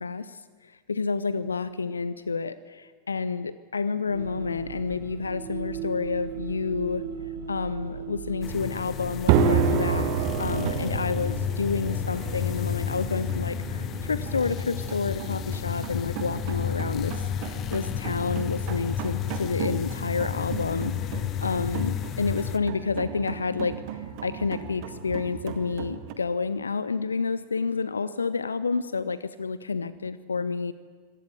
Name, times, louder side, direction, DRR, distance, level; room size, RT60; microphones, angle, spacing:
voice 1, 0.0-7.0 7.5-17.3 17.7-20.9 21.4-23.8 24.2-30.7, left 4 dB, 75° left, 16 dB, 0.6 m, -29 dB
sound 1, 4.1-17.0, right 6 dB, 60° right, 2.2 m, -40 dB
sound 2, 8.4-22.6, left 11 dB, 35° left, 0.8 m, -32 dB
sound 3, 9.3-26.1, right 7 dB, 45° right, 1.9 m, -31 dB
25.5 x 18.0 x 8.1 m, 1.5 s
figure-of-eight pair, 90°, 0 cm